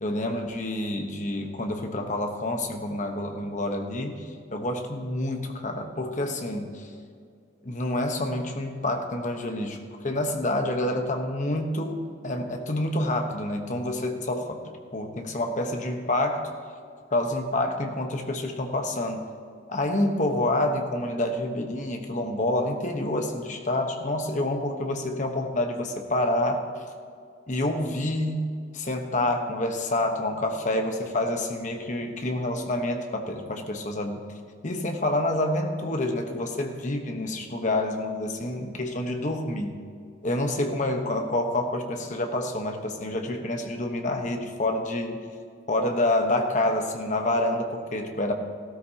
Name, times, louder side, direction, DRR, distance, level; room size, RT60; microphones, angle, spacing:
voice 1, 0.0-6.8 7.6-16.5 17.1-19.2 19.7-26.6 27.5-28.5 28.7-34.2 34.6-39.7 40.2-45.2 45.7-48.3, left 1 dB, 35° left, 4 dB, 1.1 m, -28 dB
15.5 x 13.0 x 2.9 m, 2.2 s
head